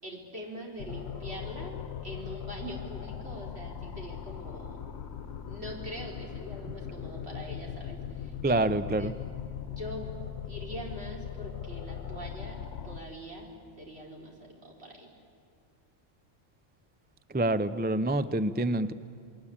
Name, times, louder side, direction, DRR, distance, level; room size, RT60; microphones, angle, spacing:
voice 1, 0.0-1.8 2.0-4.8 5.5-8.6 9.0-9.1 9.7-10.2 10.5-12.6 12.8-13.5 13.8-15.2, equal, 55° right, -1 dB, 5.0 m, -43 dB
sound 1, 0.8-13.0, left 8 dB, 60° left, 1.3 m, -39 dB
voice 2, 8.4-9.1 17.3-18.9, right 2 dB, 15° right, 13 dB, 0.4 m, -27 dB
28.0 x 22.5 x 8.8 m, 2.5 s
omnidirectional pair, 1.3 m